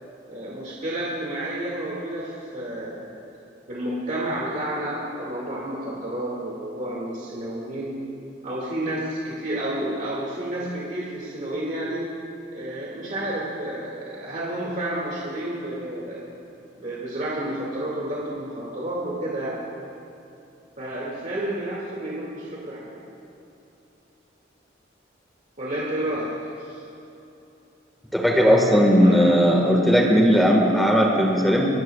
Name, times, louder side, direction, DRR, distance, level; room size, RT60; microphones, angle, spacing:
voice 1, 0.3-3.1 3.7-8.0 8.4-12.1 12.5-16.2 16.8-19.6 20.8-23.0 25.6-26.3 26.6-26.8 29.0-29.3, right 1 dB, 40° right, -6 dB, 2.2 m, -30 dB
voice 2, 28.1-31.7, equal, ahead, 0 dB, 1.6 m, -17 dB
26.5 x 12.0 x 2.4 m, 2.9 s
head